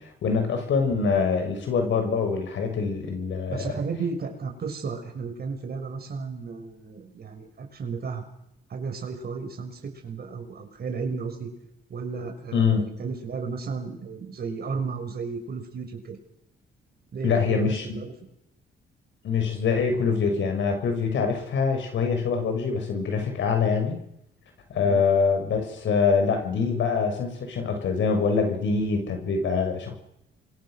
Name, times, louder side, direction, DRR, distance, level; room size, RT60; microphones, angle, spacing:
voice 1, 0.0-3.7 12.5-12.8 17.2-18.0 19.2-24.0 24.7-29.9, left 5 dB, 70° left, 5 dB, 6.6 m, -24 dB
voice 2, 3.5-8.2 8.7-11.5 11.9-16.2 17.1-18.1 24.8-25.0, right 5 dB, 50° right, 4 dB, 6.5 m, -33 dB
27.5 x 23.5 x 6.6 m, 0.81 s
cardioid pair, 90°, 20 cm